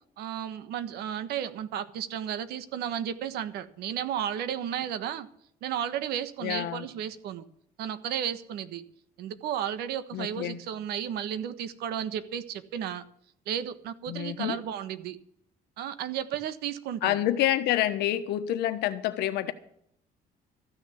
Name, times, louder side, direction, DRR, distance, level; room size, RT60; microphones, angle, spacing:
voice 1, 0.2-5.3 5.6-7.4 7.8-8.8 9.2-13.0 13.5-15.2 15.8-17.1, right 9 dB, 80° right, 1.3 m, -33 dB
voice 2, 6.4-6.9 10.1-10.6 14.1-14.6 17.0-19.5, left 13 dB, 85° left, 1.2 m, -28 dB
14.0 x 6.6 x 9.8 m
cardioid pair, 155°, 16 cm